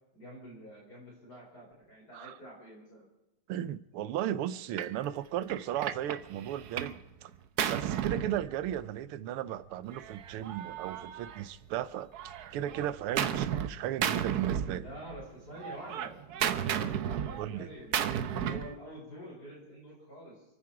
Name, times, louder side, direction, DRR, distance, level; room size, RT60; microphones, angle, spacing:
voice 1, 0.1-3.1 13.1-13.3 14.7-16.1 16.6-20.4, equal, 45° left, 5.3 m, -47 dB
voice 2, 3.5-7.3 7.7-12.1 12.5-14.8 17.4-17.7, right 11 dB, 80° right, 1.6 m, -35 dB
Gunshot gunfire, 4.8-5.0 5.5-7.0 7.3-9.0 9.9-11.8 12.1-13.7 14.0-15.2 15.5-18.7, right 9 dB, 65° right, 1.0 m, -34 dB
28.5 x 9.7 x 4.8 m
omnidirectional pair, 2.4 m